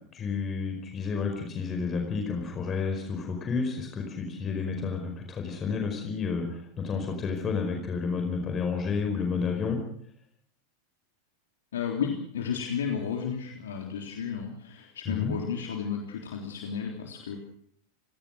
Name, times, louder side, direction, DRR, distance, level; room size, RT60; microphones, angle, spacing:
voice 1, 0.1-9.8 15.0-15.3, left 5 dB, 25° left, 4 dB, 5.1 m, -31 dB
voice 2, 11.7-17.4, left 7 dB, 65° left, 2 dB, 3.5 m, -33 dB
29.5 x 18.5 x 6.6 m, 0.66 s
figure-of-eight pair, 90°, 0 cm